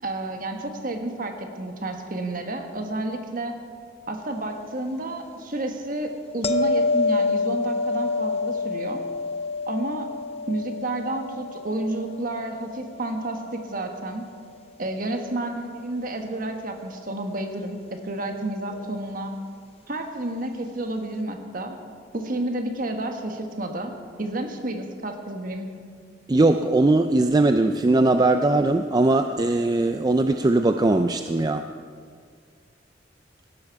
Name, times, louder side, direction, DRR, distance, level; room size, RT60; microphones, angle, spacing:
voice 1, 0.0-3.6 4.1-9.0 9.7-10.1 10.5-14.3 14.8-19.3 19.9-21.8 22.1-23.9 24.2-25.7, right 1 dB, 45° right, 4 dB, 1.4 m, -30 dB
sound 1, 6.4-13.4 18.7-18.9, left 3 dB, 30° left, 0.6 m, -27 dB
voice 2, 26.3-31.7, right 2 dB, 20° right, 7 dB, 0.3 m, -20 dB
16.5 x 12.5 x 4.7 m, 2.1 s
head